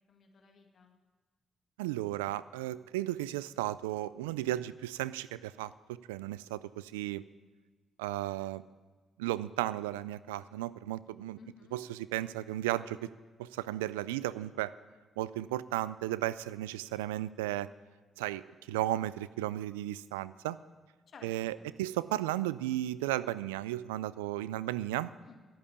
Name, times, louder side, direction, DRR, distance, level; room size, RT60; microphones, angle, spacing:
voice 1, 0.1-1.0 11.3-11.8 21.1-21.7 25.2-25.5, left 4 dB, 55° left, 3 dB, 2.1 m, -56 dB
voice 2, 1.8-5.7 6.1-7.2 8.0-8.6 9.2-11.4 11.7-13.1 13.4-14.7 15.2-17.7 18.2-18.4 18.7-20.6 21.2-25.1, right 15 dB, 90° right, 17 dB, 0.3 m, -34 dB
11.5 x 8.6 x 8.5 m, 1.3 s
hypercardioid pair, 50°, 0 cm